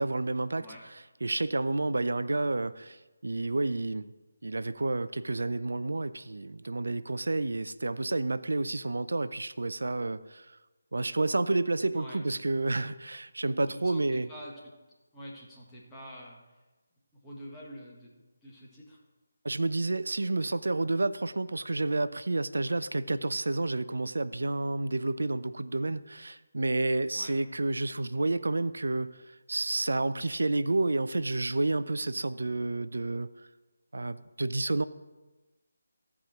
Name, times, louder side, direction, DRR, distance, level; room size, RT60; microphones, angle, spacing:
voice 1, 0.0-4.1 4.4-10.6 10.9-14.3 19.4-33.3 33.9-34.9, right 2 dB, 65° right, 14 dB, 0.5 m, -30 dB
voice 2, 11.9-12.2 13.7-14.5 15.1-16.4 17.2-19.0 27.1-27.4, equal, 10° left, -5 dB, 1.8 m, -46 dB
14.5 x 4.9 x 5.9 m, 1.1 s
figure-of-eight pair, 155°, 0 cm